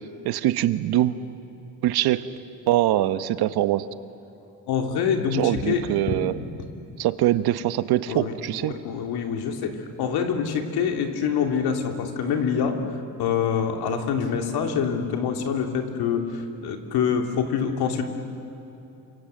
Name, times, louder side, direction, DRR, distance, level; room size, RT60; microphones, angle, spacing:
voice 1, 0.2-1.2 1.8-2.2 2.7-3.9 5.3-6.4 7.0-8.7, right 13 dB, 85° right, 12 dB, 1.1 m, -23 dB
voice 2, 4.7-5.8 8.1-12.8 13.2-18.0, left 7 dB, 90° left, 4 dB, 3.0 m, -25 dB
28.5 x 25.5 x 7.9 m, 3.0 s
cardioid pair, 170°, 37 cm